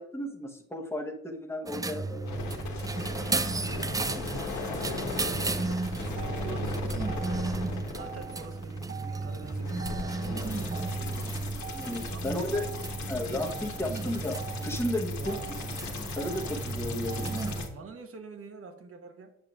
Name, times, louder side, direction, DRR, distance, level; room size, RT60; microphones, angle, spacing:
voice 1, 0.0-2.4 11.7-12.6 13.1-15.4 16.1-17.4, left 1 dB, 10° left, 1 dB, 1.1 m, -34 dB
sound 1, 1.7-17.7, right 3 dB, 15° right, 0.3 m, -34 dB
sound 2, 2.3-17.7, left 3 dB, 70° left, 1.5 m, -38 dB
voice 2, 3.7-7.6 7.9-11.5 12.0-13.0 15.2-15.7 17.5-19.4, right 4 dB, 50° right, 7 dB, 1.1 m, -47 dB
Motor vehicle (road), 5.7-17.7, right 8 dB, 70° right, 1.5 m, -46 dB
8.7 x 6.5 x 2.5 m, 0.83 s
cardioid pair, 90°, 30 cm